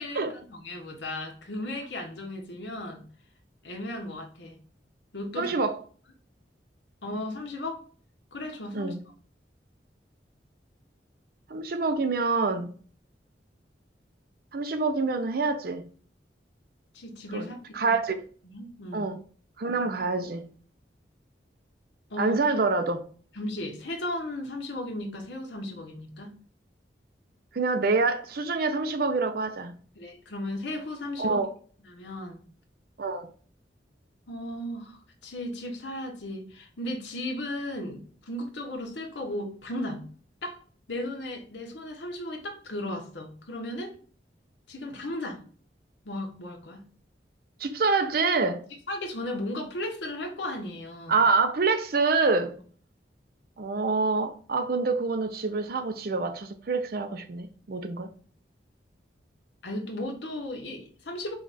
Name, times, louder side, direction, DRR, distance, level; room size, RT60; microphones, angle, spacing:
voice 1, 0.0-3.0 3.6-4.6 5.1-5.5 7.0-7.8 8.3-8.9 16.9-17.9 18.4-19.1 22.1-22.4 23.3-26.3 29.9-31.4 31.9-32.4 34.3-40.1 40.4-43.9 44.7-45.4 46.0-46.8 48.9-51.2 59.6-61.3, left 1 dB, 85° left, 1.1 m, -35 dB
voice 2, 5.4-5.8 8.7-9.0 11.5-12.8 14.5-15.9 17.3-17.5 17.7-18.2 18.9-19.2 19.6-20.5 22.2-23.0 27.5-29.8 31.2-31.5 33.0-33.3 47.6-48.6 51.1-52.6 53.6-58.1, right 4 dB, 55° right, 0.5 m, -26 dB
4.9 x 2.4 x 4.1 m
head